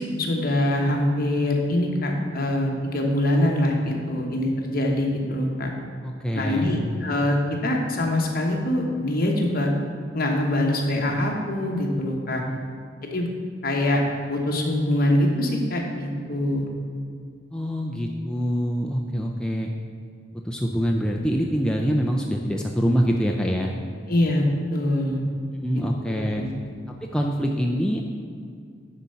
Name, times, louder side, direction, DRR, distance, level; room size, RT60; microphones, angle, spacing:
voice 1, 0.0-5.7 6.3-9.7 10.1-12.4 13.0-13.3 13.6-14.0 14.3-16.7 24.1-25.2 25.7-26.5, left 1 dB, 50° left, 1 dB, 1.1 m, -24 dB
voice 2, 6.0-6.8 12.4-12.6 17.5-19.7 20.4-23.7 25.6-26.4 27.1-28.0, equal, 5° left, 0 dB, 0.4 m, -25 dB
9.9 x 4.1 x 5.6 m, 2.2 s
head